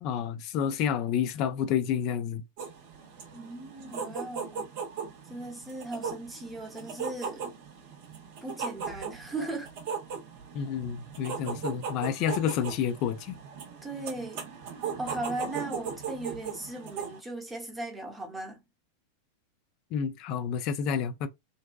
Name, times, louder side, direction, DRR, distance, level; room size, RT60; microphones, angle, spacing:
voice 1, 0.0-2.4 10.5-13.4 19.9-21.3, left 8 dB, 40° left, 0.4 m, -29 dB
sound 1, 2.6-17.2, right 6 dB, 50° right, 0.6 m, -38 dB
voice 2, 3.3-4.6 5.3-7.4 8.4-9.7 13.8-14.4 15.0-18.6, right 2 dB, 10° right, 0.9 m, -37 dB
2.6 x 2.2 x 2.3 m
figure-of-eight pair, 90°, 0 cm